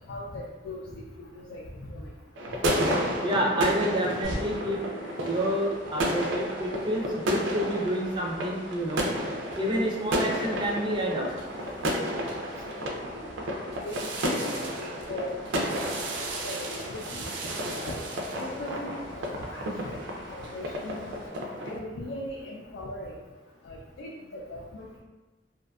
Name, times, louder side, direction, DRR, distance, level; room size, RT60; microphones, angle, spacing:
voice 1, 0.1-2.1 12.6-13.3 13.8-15.3 15.6-15.8 16.4-17.3 17.8-20.0 20.3-21.2 21.6-23.2 23.6-25.0, left 1 dB, 75° left, -2 dB, 0.3 m, -39 dB
sound 1, 2.4-21.8, equal, 90° right, 0.4 m, -32 dB
Bowed string instrument, 2.9-7.2, equal, 10° left, 0.6 m, -47 dB
voice 2, 3.2-4.8 5.2-9.1 9.6-11.3, equal, 25° right, -1 dB, 0.4 m, -28 dB
sound 2, 4.2-21.3, equal, 90° left, 1.0 m, -48 dB
2.5 x 2.4 x 2.2 m, 1.2 s
head